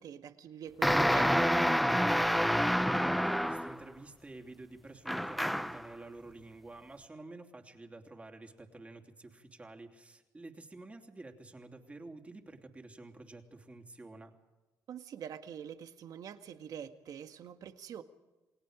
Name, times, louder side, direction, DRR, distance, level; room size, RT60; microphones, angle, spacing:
voice 1, 0.0-1.6 14.9-18.0, right 8 dB, 65° right, 8 dB, 1.8 m, -45 dB
sound 1, 0.8-3.8 5.1-5.9, equal, ahead, 0.8 m, -28 dB
voice 2, 2.9-14.3, right 2 dB, 20° right, 4 dB, 3.1 m, -50 dB
29.0 x 20.0 x 5.1 m, 1.1 s
cardioid pair, 95°, 7 cm